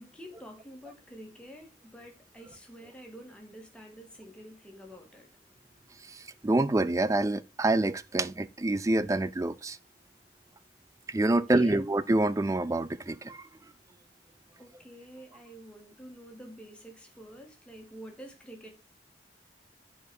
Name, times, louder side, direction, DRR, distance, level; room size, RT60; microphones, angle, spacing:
voice 1, 0.0-5.3 11.3-11.8 14.6-18.7, equal, 5° left, 1.9 m, -48 dB
voice 2, 6.0-9.8 11.1-13.5, right 2 dB, 15° right, 0.4 m, -27 dB
8.9 x 5.0 x 4.8 m
head